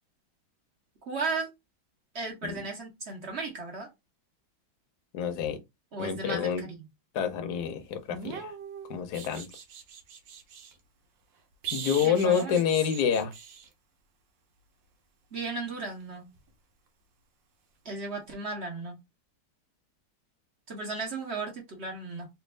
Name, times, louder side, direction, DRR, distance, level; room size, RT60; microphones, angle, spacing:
voice 1, 1.1-1.5 2.1-3.9 5.9-6.9 12.0-12.6 15.3-16.3 17.8-19.0 20.7-22.3, right 3 dB, 40° right, 1.0 m, -35 dB
voice 2, 5.1-5.6 6.0-6.6 7.1-8.5 8.9-9.5 11.7-13.3, left 7 dB, 65° left, 1.0 m, -27 dB
sound 1, 8.1-10.7 11.6-13.7 16.3-16.5, right 7 dB, 70° right, 1.4 m, -41 dB
3.4 x 2.6 x 3.2 m
omnidirectional pair, 2.2 m